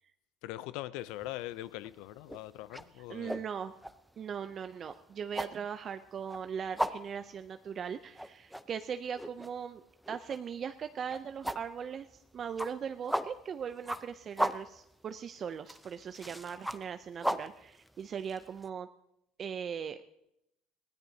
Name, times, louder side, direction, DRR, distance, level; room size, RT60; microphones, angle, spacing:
voice 1, 0.4-3.4, left 15 dB, 75° left, 0.5 m, -41 dB
sound 1, 1.1-1.4 1.8-18.7, equal, ahead, 0.6 m, -38 dB
voice 2, 3.1-3.7 4.2-9.8 10.1-18.9 19.4-20.0, right 7 dB, 40° right, 0.5 m, -39 dB
22.5 x 16.0 x 2.8 m
supercardioid pair, 100°, 0 cm